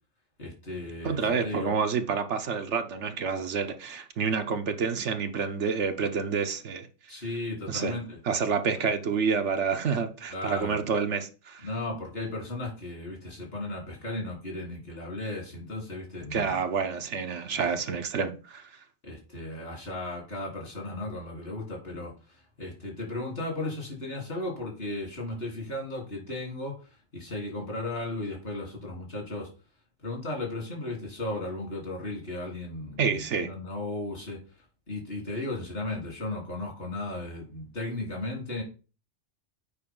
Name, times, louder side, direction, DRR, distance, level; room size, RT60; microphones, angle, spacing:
voice 1, 0.4-1.7 7.1-8.2 8.7-8.9 10.3-10.8 11.6-16.6 17.5-17.6 19.0-29.5 30.0-38.6, left 2 dB, 55° left, 3.6 m, -35 dB
voice 2, 1.0-6.9 7.7-8.0 8.3-11.7 16.3-18.7 33.0-33.5, right 5 dB, 75° right, 1.2 m, -28 dB
8.5 x 5.2 x 3.7 m
omnidirectional pair, 1.2 m